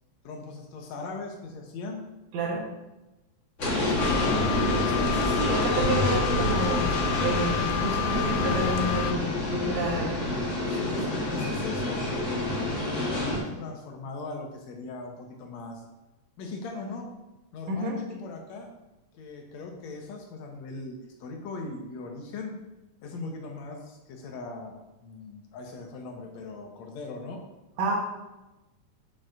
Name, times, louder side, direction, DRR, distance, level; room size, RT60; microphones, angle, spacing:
voice 1, 0.2-2.0 3.6-6.4 10.7-15.8 16.4-17.1 17.5-18.7 19.1-22.5 23.0-27.4, left 3 dB, 75° left, 2 dB, 2.2 m, -39 dB
voice 2, 2.3-2.7 5.2-6.9 7.2-10.2 17.7-17.9 27.8-28.0, right 2 dB, 70° right, -1 dB, 2.3 m, -29 dB
sound 1, 3.6-13.4, left 1 dB, 45° left, 1.0 m, -27 dB
sound 2, 4.0-9.1, left 8 dB, 90° left, 1.3 m, -30 dB
7.4 x 6.7 x 2.6 m, 1.0 s
omnidirectional pair, 3.3 m